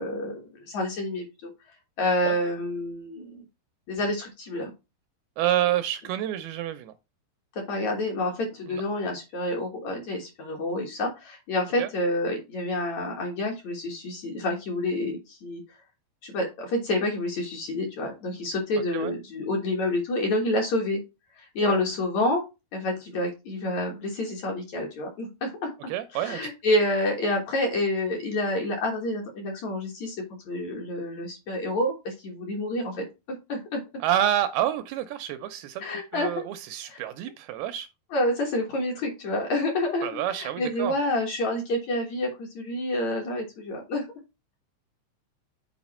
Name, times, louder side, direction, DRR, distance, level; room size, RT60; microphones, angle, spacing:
voice 1, 0.0-1.5 2.0-3.4 3.9-4.7 7.6-15.6 16.2-21.0 21.3-22.4 22.7-25.7 26.1-30.2 30.5-33.8 35.8-36.4 36.8-37.1 38.1-44.1, left 1 dB, 55° left, 2.2 m, -28 dB
voice 2, 5.4-6.9 8.7-8.8 11.8-11.9 18.9-19.1 21.6-21.8 25.9-26.5 34.0-35.8 36.1-37.9 40.0-41.0, right 12 dB, 80° right, 2.3 m, -28 dB
7.9 x 4.6 x 4.2 m
omnidirectional pair, 4.7 m